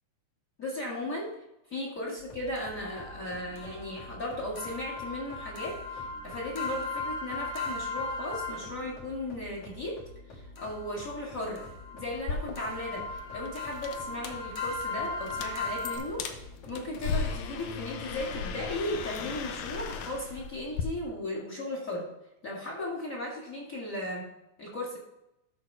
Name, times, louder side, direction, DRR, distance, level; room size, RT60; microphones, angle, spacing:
voice 1, 0.6-1.3 1.7-10.0 10.3-11.6 11.9-22.1 22.4-24.3 24.6-25.0, left 1 dB, 30° left, -2 dB, 2.0 m, -36 dB
sound 1, 2.2-20.2, left 1 dB, 55° left, 2.3 m, -49 dB
sound 2, 2.6-9.0 10.6-16.0, left 3 dB, 90° left, 0.7 m, -38 dB
sound 3, 12.2-20.8, left 6 dB, 70° left, 1.9 m, -37 dB
13.0 x 4.5 x 4.7 m, 0.88 s
omnidirectional pair, 3.7 m